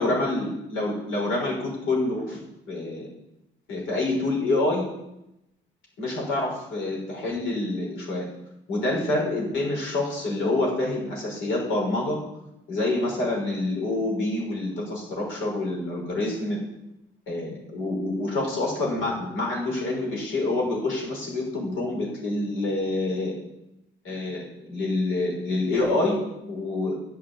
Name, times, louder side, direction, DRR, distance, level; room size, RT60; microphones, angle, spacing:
voice 1, 0.0-2.4 2.7-3.1 3.7-4.9 6.0-8.3 8.7-12.2 12.7-16.6 17.3-23.3 24.0-26.2 26.5-27.0, left 2 dB, 80° left, -1 dB, 6.1 m, -27 dB
12.5 x 7.7 x 8.5 m, 0.88 s
cardioid pair, 90°, 20 cm